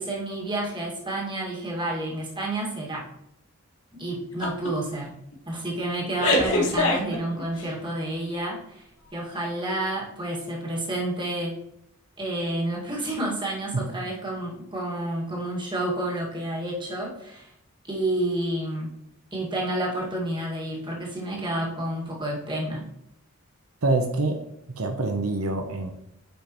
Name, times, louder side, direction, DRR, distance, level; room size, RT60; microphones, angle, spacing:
voice 1, 0.0-3.0 4.0-5.1 5.5-8.8 9.1-11.6 12.2-17.5 17.8-18.9 19.3-22.9, right 1 dB, 25° right, -2 dB, 1.9 m, -30 dB
sound 1, 4.4-4.7 5.1-5.3 6.2-7.7, left 1 dB, 80° left, 1.4 m, -23 dB
voice 2, 23.8-24.4 24.8-25.9, right 2 dB, 80° right, 4 dB, 0.8 m, -25 dB
9.0 x 5.3 x 3.0 m, 0.79 s
head